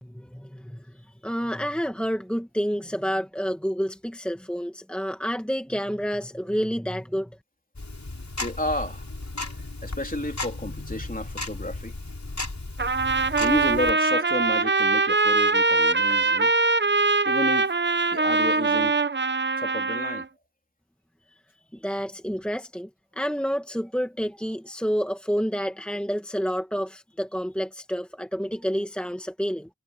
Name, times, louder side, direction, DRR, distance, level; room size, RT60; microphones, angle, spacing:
voice 1, 0.0-0.8 1.2-7.3 21.8-22.9 23.1-29.7, equal, 5° left, 1.7 m, -29 dB
Tick-tock, 7.8-13.9, left 2 dB, 60° left, 6.3 m, -35 dB
voice 2, 8.4-9.0 9.5-11.9 13.4-16.5 17.3-17.7 18.1-19.0 19.6-20.3, left 1 dB, 25° left, 3.5 m, -31 dB
Trumpet, 12.8-20.3, right 3 dB, 35° right, 0.6 m, -22 dB
wide cardioid pair, 45°, 32 cm